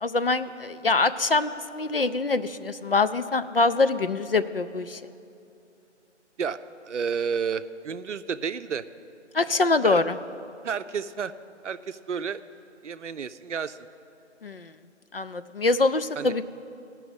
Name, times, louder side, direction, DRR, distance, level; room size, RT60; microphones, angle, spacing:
voice 1, 0.0-5.0 9.3-10.2 14.4-14.7 15.1-16.4, left 3 dB, 50° left, 12 dB, 0.4 m, -24 dB
voice 2, 6.8-8.9 9.8-10.0 10.6-11.3 11.6-12.4 12.8-13.8 16.2-16.3, right 6 dB, 70° right, 13 dB, 0.6 m, -31 dB
16.5 x 6.2 x 7.9 m, 2.7 s
figure-of-eight pair, 170°, 37 cm